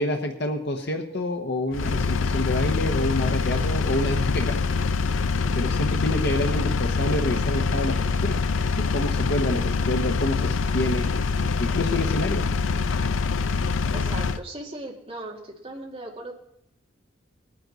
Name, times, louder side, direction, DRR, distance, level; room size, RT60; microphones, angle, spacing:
voice 1, 0.0-4.6 5.5-8.4 8.8-11.1 11.6-12.4, left 1 dB, 55° left, 3 dB, 1.0 m, -28 dB
Engine, 1.7-14.4, left 4 dB, 75° left, 0.5 m, -25 dB
voice 2, 13.9-16.3, right 1 dB, 30° right, -1 dB, 2.0 m, -37 dB
20.5 x 9.6 x 4.0 m, 0.79 s
head